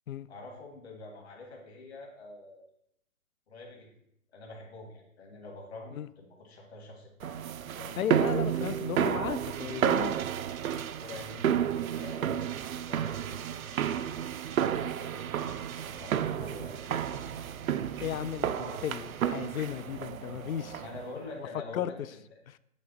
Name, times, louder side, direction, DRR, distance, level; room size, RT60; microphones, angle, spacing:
voice 1, 0.3-2.7 3.5-3.9 4.3-7.4 7.8-8.0 11.0-15.3 15.8-17.2 18.6-19.1 20.8-21.9, left 2 dB, 50° left, -1 dB, 2.0 m, -46 dB
sound 1, 7.2-21.1, right 9 dB, 80° right, 0.5 m, -31 dB
voice 2, 8.0-10.2 18.0-20.8 21.7-21.9 22.5-22.6, left 10 dB, 80° left, 16 dB, 0.5 m, -35 dB
8.3 x 3.3 x 4.0 m, 0.77 s
hypercardioid pair, 165°, 42 cm